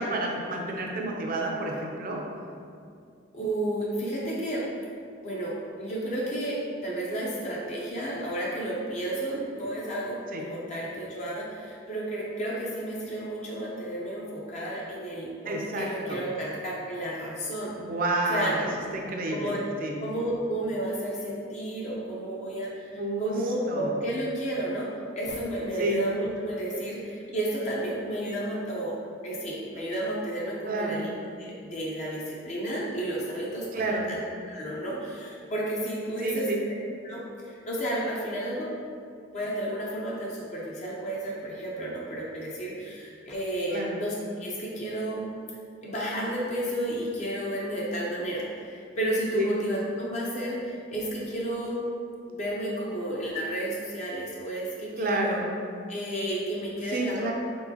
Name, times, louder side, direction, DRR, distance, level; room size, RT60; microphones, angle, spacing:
voice 1, 0.0-2.2 9.3-9.4 10.3-10.4 15.5-16.2 17.8-18.6 18.9-19.6 19.8-19.9 23.0-23.3 23.7-23.9 25.8-26.0 30.7-31.0 33.7-34.1 36.2-36.6 43.7-44.0 49.3-49.5 55.0-55.4 56.9-57.3, right 2 dB, 50° right, 0 dB, 0.6 m, -29 dB
voice 2, 3.3-4.6 5.2-5.5 5.8-17.7 18.3-18.7 19.3-19.6 20.0-22.9 23.2-24.9 25.2-29.0 29.2-31.1 31.4-36.5 37.0-38.7 39.3-44.1 44.4-45.2 45.8-51.8 52.3-55.4 55.9-57.3, right 1 dB, 40° left, -5 dB, 0.6 m, -32 dB
4.6 x 3.7 x 2.8 m, 2.4 s
head